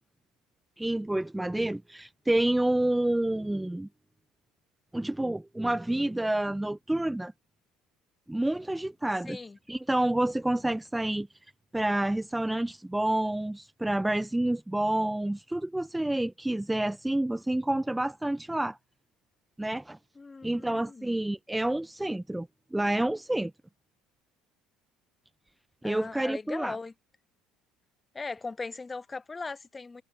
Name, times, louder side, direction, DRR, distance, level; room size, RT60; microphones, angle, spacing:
voice 1, 0.8-3.9 4.9-7.3 8.3-9.4 9.7-11.3 11.7-18.8 19.6-20.0 20.4-23.5 25.8-26.8, right 1 dB, 5° right, 0.3 m, -28 dB
voice 2, 9.2-9.6 20.1-21.2 25.8-26.9 28.1-30.0, left 3 dB, 20° left, 0.9 m, -39 dB
supercardioid pair, 90°, 0 cm